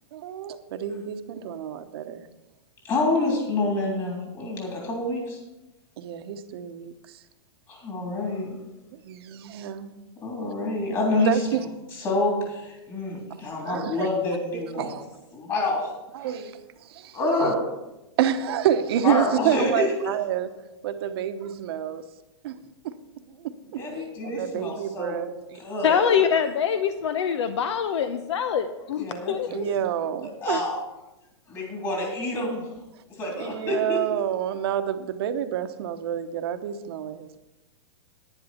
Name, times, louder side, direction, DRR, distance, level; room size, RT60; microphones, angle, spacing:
voice 1, 0.1-2.2 6.0-6.9 9.0-9.9 11.2-11.6 13.3-14.1 14.5-15.0 16.1-17.5 18.2-20.5 20.8-22.0 22.4-22.5 22.8-23.9 24.2-25.3 29.5-30.6 33.4-37.4, right 10 dB, 60° right, 9 dB, 1.0 m, -28 dB
voice 2, 2.8-5.4 7.7-8.6 10.2-11.4 11.9-14.9 15.3-15.9 16.2-16.3 17.1-17.7 19.0-20.1 23.8-25.1 25.5-26.0 29.0-29.3 30.4-30.8 31.5-32.7 33.1-34.0, left 2 dB, 25° left, -1 dB, 3.2 m, -27 dB
voice 3, 25.8-29.8, left 7 dB, 80° left, 10 dB, 0.7 m, -24 dB
10.5 x 10.0 x 4.3 m, 0.99 s
hypercardioid pair, 150°, 15 cm